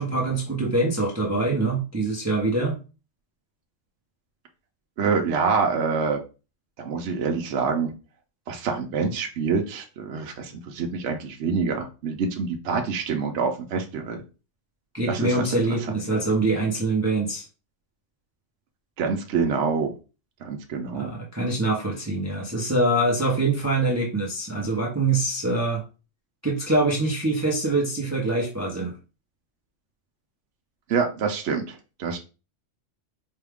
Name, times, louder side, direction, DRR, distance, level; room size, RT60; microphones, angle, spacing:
voice 1, 0.0-2.8 14.9-17.4 20.9-25.8 26.4-28.9, right 2 dB, 15° right, -2 dB, 0.7 m, -24 dB
voice 2, 5.0-6.2 6.8-7.9 8.5-14.2 15.1-15.6 19.0-19.9 20.4-21.1 30.9-32.2, right 5 dB, 70° right, 3 dB, 0.9 m, -26 dB
4.7 x 2.4 x 3.4 m, 0.32 s
omnidirectional pair, 1.3 m